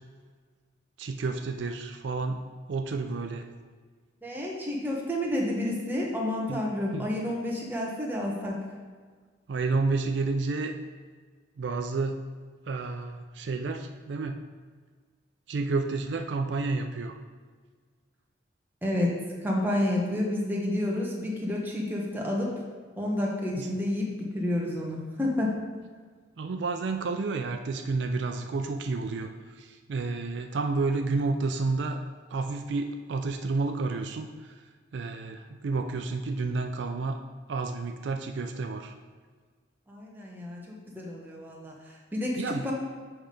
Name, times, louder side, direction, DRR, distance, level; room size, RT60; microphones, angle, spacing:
voice 1, 1.0-2.4 2.7-3.5 6.5-6.6 6.9-7.1 9.5-10.7 11.6-12.2 12.7-14.4 15.5-17.2 23.6-23.7 26.4-29.3 29.6-32.0 32.3-34.5 34.9-37.2 37.5-38.9 42.4-42.6, right 3 dB, 70° right, 6 dB, 0.4 m, -30 dB
voice 2, 4.2-8.6 18.8-19.1 19.4-22.5 23.0-25.5 39.9-41.7 42.1-42.7, left 1 dB, 10° right, -2 dB, 1.0 m, -30 dB
7.3 x 3.4 x 5.2 m, 1.5 s
head